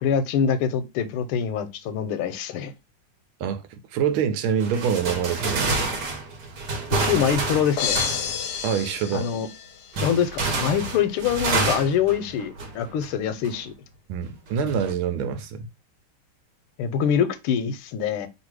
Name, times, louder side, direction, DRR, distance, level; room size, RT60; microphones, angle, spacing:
voice 1, 0.0-2.7 6.9-8.0 9.1-9.5 10.0-13.7 16.8-18.3, left 8 dB, 85° left, 1.5 m, -24 dB
voice 2, 3.4-6.0 8.6-9.3 14.1-15.7, right 7 dB, 80° right, 1.5 m, -26 dB
sound 1, 4.6-8.7 9.9-13.1 13.4-13.6 14.5-14.9, right 3 dB, 60° right, 1.3 m, -28 dB
sound 2, 7.8-10.0, left 8 dB, 70° left, 1.0 m, -30 dB
3.5 x 2.6 x 4.5 m
omnidirectional pair, 2.4 m